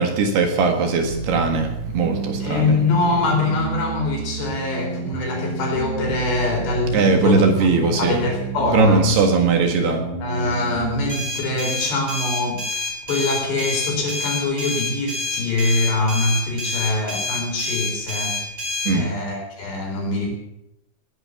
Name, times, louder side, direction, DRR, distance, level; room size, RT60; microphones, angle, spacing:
voice 1, 0.0-2.8 6.9-8.3 8.7-10.1 18.9-19.1, right 4 dB, 65° right, 4 dB, 3.6 m, -20 dB
sound 1, 1.1-11.1, right 5 dB, 40° right, 5.1 m, -30 dB
voice 2, 2.4-7.4 7.8-9.2 10.2-18.4 18.9-20.3, left 2 dB, 65° left, 1 dB, 6.0 m, -23 dB
sound 2, 11.1-18.9, left 3 dB, 15° right, 4.1 m, -27 dB
19.5 x 10.0 x 7.2 m, 0.81 s
omnidirectional pair, 5.5 m